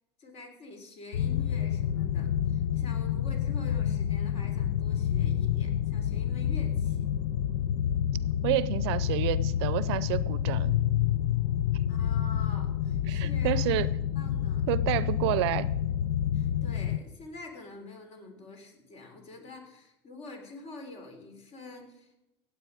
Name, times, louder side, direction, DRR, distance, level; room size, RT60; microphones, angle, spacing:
voice 1, 0.2-7.1 11.9-13.9 14.2-14.7 16.3-22.1, left 2 dB, 45° left, 4 dB, 3.7 m, -47 dB
sound 1, 1.1-17.0, left 10 dB, 80° left, 0.6 m, -28 dB
voice 2, 8.4-10.7 13.1-13.9 14.7-15.7, right 15 dB, 75° right, 17 dB, 0.6 m, -29 dB
16.5 x 8.0 x 5.0 m, 0.93 s
hypercardioid pair, 95°, 14 cm